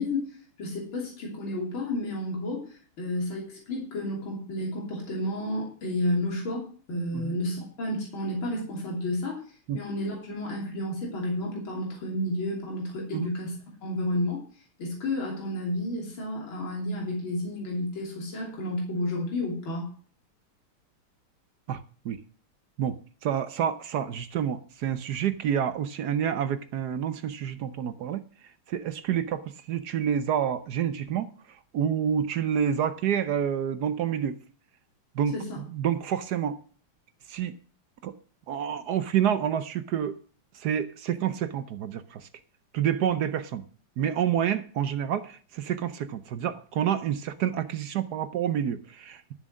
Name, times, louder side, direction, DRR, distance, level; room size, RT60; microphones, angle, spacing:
voice 1, 0.0-2.7 3.0-9.4 9.7-14.4 14.8-19.9 35.3-35.6, left 1 dB, 65° left, 3.9 m, -31 dB
voice 2, 23.2-28.2 28.7-31.3 31.7-34.4 35.2-35.3 35.7-36.6 37.3-37.5 38.0-38.1 38.5-40.1 40.5-42.3 42.7-43.6 44.0-49.3, right 9 dB, 65° right, 1.0 m, -28 dB
12.5 x 7.3 x 6.3 m
omnidirectional pair, 2.3 m